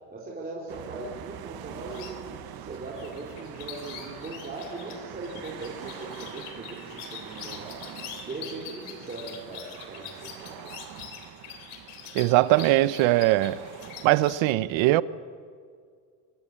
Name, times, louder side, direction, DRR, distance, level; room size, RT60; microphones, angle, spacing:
voice 1, 0.1-7.8 8.2-10.7, right 2 dB, 20° right, 4.1 m, -39 dB
sound 1, 0.7-14.4, right 10 dB, 50° right, 1.7 m, -44 dB
sound 2, 1.8-2.2 2.7-14.4, left 9 dB, 90° left, 3.8 m, -44 dB
voice 2, 12.1-13.6 14.0-15.0, right 17 dB, 80° right, 1.0 m, -21 dB
25.0 x 21.0 x 8.9 m
cardioid pair, 150°, 47 cm